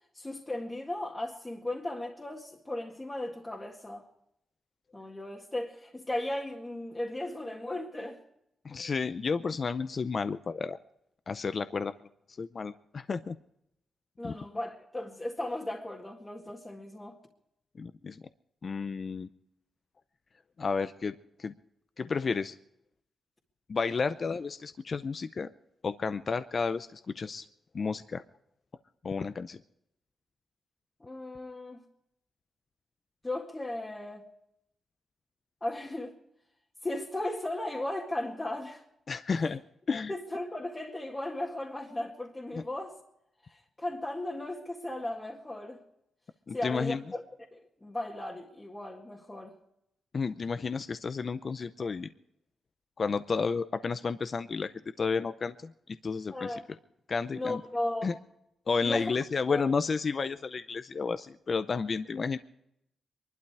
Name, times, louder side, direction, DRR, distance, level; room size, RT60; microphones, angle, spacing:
voice 1, 0.1-4.0 4.9-8.2 14.2-17.2 31.0-31.8 33.2-34.2 35.6-36.2 36.8-38.8 40.1-43.0 43.4-45.8 46.5-47.2 47.5-49.5 56.3-56.7 57.3-58.1 58.8-59.2 59.5-59.6, left 1 dB, 15° left, 1.9 m, -36 dB
voice 2, 8.6-10.8 11.3-11.9 12.4-13.4 14.2-14.4 17.8-18.2 18.6-19.3 20.6-21.5 22.0-22.6 23.7-25.5 25.8-27.5 27.7-28.2 29.0-29.6 39.1-39.6 39.9-40.1 42.5-42.6 46.5-47.0 50.1-52.1 53.0-54.7 55.0-56.6 57.1-57.6 58.0-58.1 58.7-62.4, left 5 dB, 45° left, 0.6 m, -32 dB
23.5 x 12.0 x 4.7 m
cardioid pair, 90°, 0 cm